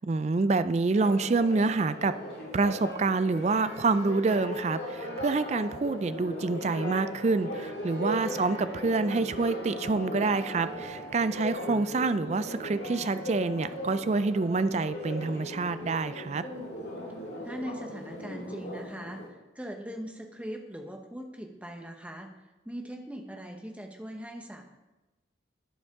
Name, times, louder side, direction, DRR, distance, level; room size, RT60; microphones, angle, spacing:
voice 1, 0.1-2.1 2.5-16.4, right 3 dB, 35° right, 13 dB, 0.3 m, -27 dB
Church bell, 0.9-19.3, left 1 dB, 60° left, 2.2 m, -38 dB
voice 2, 17.4-22.3 22.6-24.6, equal, 5° right, 3 dB, 0.9 m, -40 dB
11.0 x 8.0 x 3.6 m, 1.1 s
head